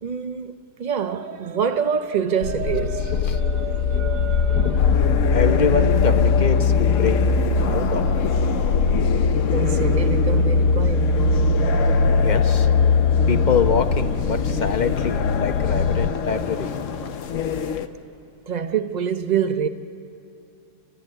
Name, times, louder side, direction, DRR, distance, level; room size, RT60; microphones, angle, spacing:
voice 1, 0.0-4.9 9.4-11.2 13.0-13.1 18.5-19.7, right 7 dB, 50° right, 0.5 m, -26 dB
sound 1, 2.4-16.1, left 4 dB, 75° left, 1.5 m, -20 dB
sound 2, 4.8-17.9, left 7 dB, 55° left, 1.0 m, -28 dB
voice 2, 5.3-8.1 12.2-12.7 13.3-16.7, left 5 dB, 35° left, 0.8 m, -25 dB
29.0 x 14.5 x 9.1 m
omnidirectional pair, 1.8 m